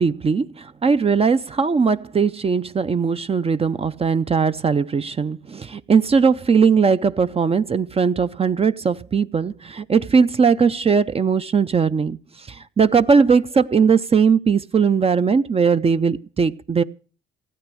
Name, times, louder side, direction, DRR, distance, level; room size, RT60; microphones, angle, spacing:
voice 1, 0.0-16.8, right 5 dB, 30° right, 0.6 m, -19 dB
16.0 x 9.0 x 6.2 m
cardioid pair, 90°, 20 cm